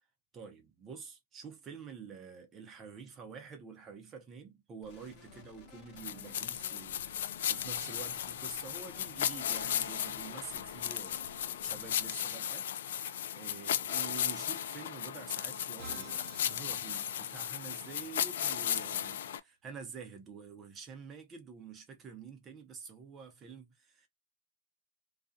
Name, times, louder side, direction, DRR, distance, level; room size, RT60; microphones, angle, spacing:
voice 1, 0.3-12.7 13.3-24.1, right 6 dB, 20° right, 0.8 m, -48 dB
sound 1, 4.8-12.1, left 6 dB, 40° left, 1.0 m, -56 dB
sound 2, 6.0-19.4, left 10 dB, 70° left, 0.3 m, -36 dB
Musical instrument, 15.8-17.9, right 5 dB, 45° right, 1.0 m, -51 dB
2.4 x 2.3 x 2.5 m
hypercardioid pair, 140°, 0 cm